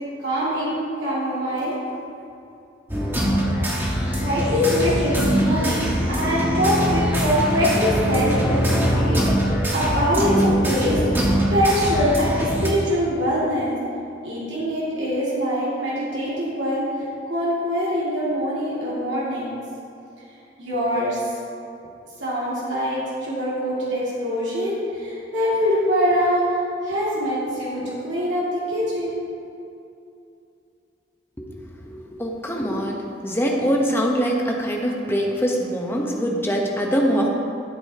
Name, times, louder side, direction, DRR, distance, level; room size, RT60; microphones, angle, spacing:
voice 1, 0.2-1.7 4.2-5.8 6.1-13.8 14.2-16.8 17.3-19.5 20.6-21.2 22.2-26.4 26.8-29.2, equal, 75° right, -8 dB, 2.4 m, -23 dB
sound 1, 2.9-12.7, equal, 10° right, 1.4 m, -22 dB
voice 2, 31.9-37.3, equal, 15° left, -1 dB, 1.0 m, -23 dB
13.0 x 7.8 x 2.9 m, 2.6 s
head